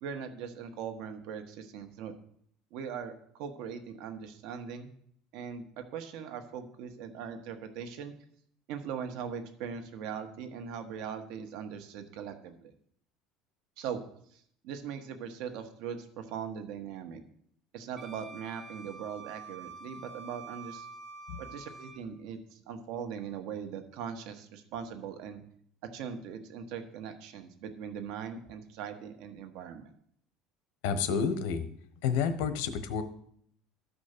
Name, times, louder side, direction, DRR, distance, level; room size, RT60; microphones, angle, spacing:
voice 1, 0.0-2.1 2.7-4.9 5.3-8.1 8.7-12.7 13.8-14.0 14.3-17.2 17.7-20.9 21.4-25.4 25.9-29.9, right 7 dB, 55° right, 7 dB, 1.4 m, -40 dB
Wind instrument woodwind instrument, 18.0-22.0, right 4 dB, 25° right, 1.2 m, -47 dB
voice 2, 30.8-31.7 32.0-33.0, left 6 dB, 75° left, 11 dB, 1.2 m, -29 dB
12.5 x 5.2 x 6.7 m, 0.65 s
cardioid pair, 175°, 0 cm